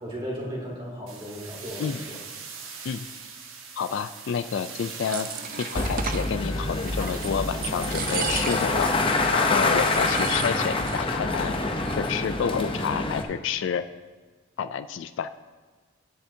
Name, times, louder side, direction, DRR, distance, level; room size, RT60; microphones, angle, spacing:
voice 1, 0.0-2.2, equal, 25° right, -5 dB, 2.6 m, -35 dB
sound 1, 1.1-9.1, right 5 dB, 80° right, 1.2 m, -42 dB
voice 2, 3.8-5.3 5.6-8.9 9.3-11.5 12.0-13.8 14.6-15.3, left 6 dB, 60° left, 11 dB, 0.3 m, -29 dB
sound 2, 4.7-6.3 6.9-7.4 7.6-8.9 9.2-9.3 9.7-11.0 11.3-11.4 11.7-12.2, right 6 dB, 40° right, 0.5 m, -34 dB
sound 3, 5.7-13.2, left 2 dB, 25° left, 0.6 m, -26 dB
11.0 x 10.0 x 2.7 m, 1.4 s
head